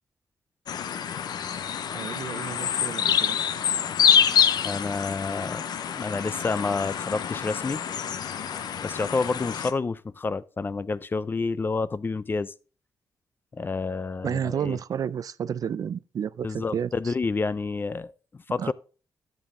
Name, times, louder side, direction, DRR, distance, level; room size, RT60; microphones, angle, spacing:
sound 1, 0.7-9.7, left 8 dB, 80° left, 0.6 m, -26 dB
voice 1, 1.9-3.4 14.2-17.1 18.6-18.7, right 8 dB, 60° right, 0.4 m, -31 dB
voice 2, 4.6-5.7 6.0-7.8 8.8-12.5 13.5-14.8 16.4-18.7, left 4 dB, 30° left, 0.4 m, -29 dB
10.5 x 7.1 x 3.6 m
cardioid pair, 100°, 7 cm